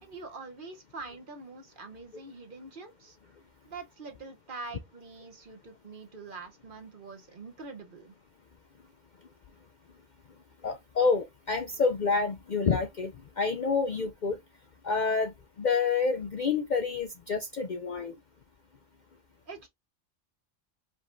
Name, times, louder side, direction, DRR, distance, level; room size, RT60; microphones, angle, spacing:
voice 1, 0.0-3.2 3.6-8.1 19.5-19.7, right 3 dB, 45° right, 1.0 m, -44 dB
voice 2, 10.6-14.4 14.8-18.1, left 4 dB, 55° left, 0.5 m, -28 dB
5.1 x 3.2 x 2.6 m
omnidirectional pair, 1.3 m